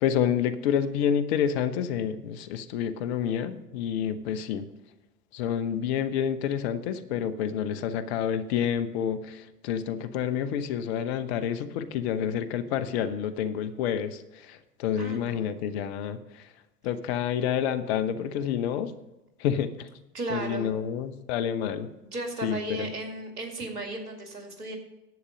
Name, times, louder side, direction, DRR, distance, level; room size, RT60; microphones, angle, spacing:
voice 1, 0.0-4.7 5.3-16.4 16.8-18.9 19.4-19.9 20.3-21.9 22.4-22.9, left 8 dB, 45° left, 11 dB, 0.9 m, -29 dB
voice 2, 15.0-15.5 20.1-20.7 22.0-24.8, right 2 dB, 75° right, 3 dB, 2.6 m, -35 dB
11.0 x 8.3 x 5.1 m, 1.0 s
figure-of-eight pair, 100°, 46 cm